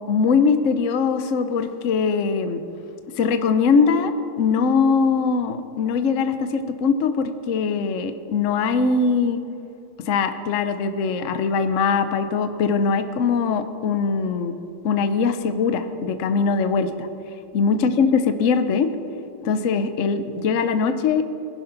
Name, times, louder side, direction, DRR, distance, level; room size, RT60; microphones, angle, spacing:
voice 1, 0.1-2.6 3.2-4.1 4.4-9.4 10.1-14.6 14.8-17.1 17.5-18.9 19.4-21.2, left 5 dB, 80° left, 9 dB, 0.6 m, -21 dB
21.0 x 11.5 x 3.9 m, 2.6 s
omnidirectional pair, 2.4 m